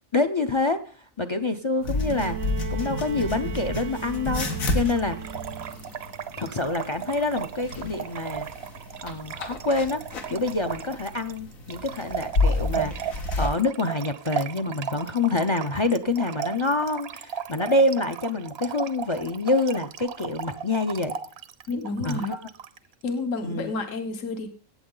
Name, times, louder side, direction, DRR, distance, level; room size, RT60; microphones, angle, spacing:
voice 1, 0.1-0.8 1.2-2.4 2.7-4.5 4.7-5.2 6.4-8.5 9.0-10.0 10.3-21.2 22.0-22.4 23.4-23.7, left 2 dB, 40° left, 10 dB, 0.4 m, -26 dB
sound 1, 1.8-13.5, left 2 dB, 90° left, 1.9 m, -31 dB
Bowed string instrument, 1.9-6.0 7.2-7.3, right 8 dB, 90° right, 1.2 m, -38 dB
Trickle dribble / Fill (with liquid), 4.3-22.8, right 8 dB, 60° right, 0.9 m, -36 dB
voice 2, 21.7-22.4 23.0-24.5, left 3 dB, 75° left, 7 dB, 1.6 m, -30 dB
15.5 x 8.7 x 3.8 m, 0.39 s
omnidirectional pair, 1.4 m